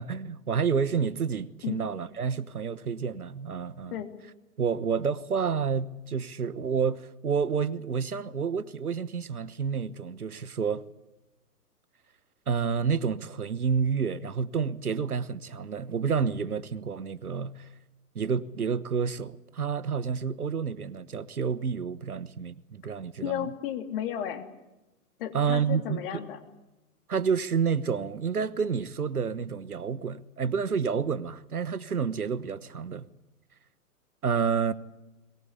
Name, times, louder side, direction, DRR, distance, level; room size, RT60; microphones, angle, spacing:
voice 1, 0.0-4.0 4.6-10.8 12.5-17.7 18.1-23.5 25.3-26.2 27.1-33.1 34.2-34.7, right 6 dB, 70° right, 1.2 m, -29 dB
voice 2, 23.2-24.5 25.2-26.4, left 10 dB, 35° left, 2.8 m, -33 dB
22.5 x 20.0 x 8.4 m
figure-of-eight pair, 120°, 46 cm